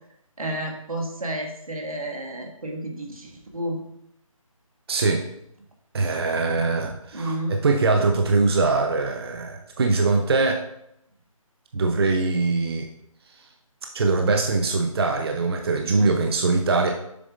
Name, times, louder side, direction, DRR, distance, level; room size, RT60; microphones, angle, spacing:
voice 1, 0.4-3.8 7.1-7.6, right 1 dB, 90° right, 1 dB, 1.8 m, -31 dB
voice 2, 4.9-5.2 5.9-10.6 11.7-12.9 13.9-16.9, right 3 dB, 45° right, 3 dB, 0.6 m, -22 dB
7.1 x 7.0 x 2.5 m, 0.77 s
figure-of-eight pair, 165°, 18 cm